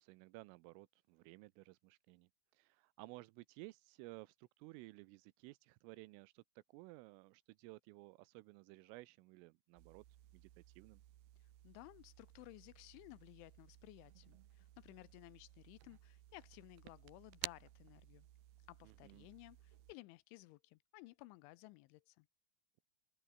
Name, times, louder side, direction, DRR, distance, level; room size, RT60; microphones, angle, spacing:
voice 1, 0.0-10.0 10.3-10.5 10.8-11.0 18.8-19.3, right 22 dB, 85° right, 3.3 m, -56 dB
sound 1, 9.8-19.9, right 13 dB, 65° right, 2.9 m, -56 dB
voice 2, 11.6-18.3 18.7-22.3, left 20 dB, 85° left, 2.9 m, -57 dB
omnidirectional pair, 5.8 m